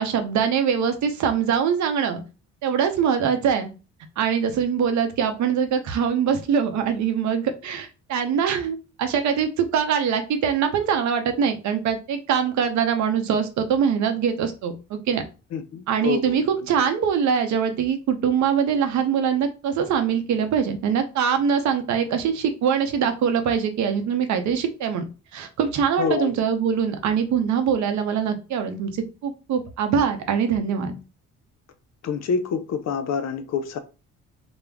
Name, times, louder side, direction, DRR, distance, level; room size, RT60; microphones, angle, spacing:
voice 1, 0.0-2.2 2.6-3.7 4.2-15.2 15.9-25.0 25.3-31.0, right 7 dB, 70° right, 0.6 m, -23 dB
voice 2, 15.5-16.4 26.0-26.3 32.0-33.8, left 6 dB, 60° left, 0.5 m, -27 dB
2.3 x 2.1 x 3.4 m
cardioid pair, 90°, 30 cm